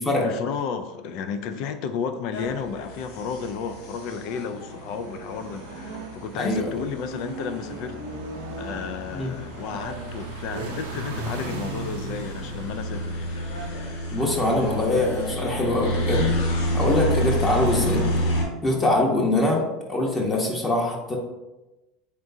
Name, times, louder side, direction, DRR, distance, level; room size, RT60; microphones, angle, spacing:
voice 1, 0.2-8.0 8.6-13.3, left 6 dB, 65° left, 9 dB, 0.4 m, -32 dB
Various Gear Changes, 2.1-18.7, right 3 dB, 85° right, 0.7 m, -40 dB
sound 1, 2.3-18.4, equal, 85° left, 0.9 m, -30 dB
voice 2, 6.3-6.7 9.1-9.3 14.1-16.3 16.7-18.1 18.6-21.2, left 2 dB, 20° left, -2 dB, 1.0 m, -23 dB
3.7 x 3.6 x 2.7 m, 1.0 s
supercardioid pair, 100°, 0 cm